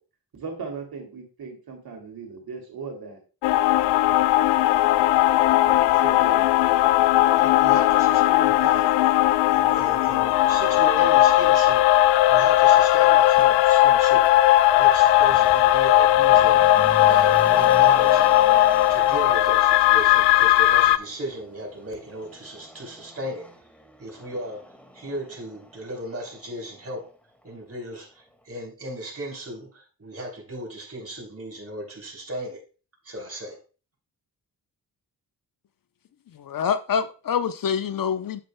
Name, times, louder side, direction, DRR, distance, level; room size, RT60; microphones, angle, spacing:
voice 1, 0.3-3.2 5.6-6.5 7.7-7.8, right 4 dB, 60° right, 3.0 m, -37 dB
sound 1, 3.4-21.0, left 14 dB, 80° left, 0.5 m, -18 dB
voice 2, 7.3-9.2 9.5-11.9 12.3-16.7 17.0-18.3 18.9-23.5 24.0-24.7 24.9-27.1 27.4-32.6 33.0-33.6, right 1 dB, 35° right, 3.6 m, -36 dB
Motor vehicle (road), 13.4-13.5 14.2-27.1 27.4-27.5, left 1 dB, 5° left, 2.0 m, -41 dB
voice 3, 36.3-38.4, left 7 dB, 55° left, 0.8 m, -26 dB
8.9 x 7.8 x 2.2 m
hypercardioid pair, 45°, 41 cm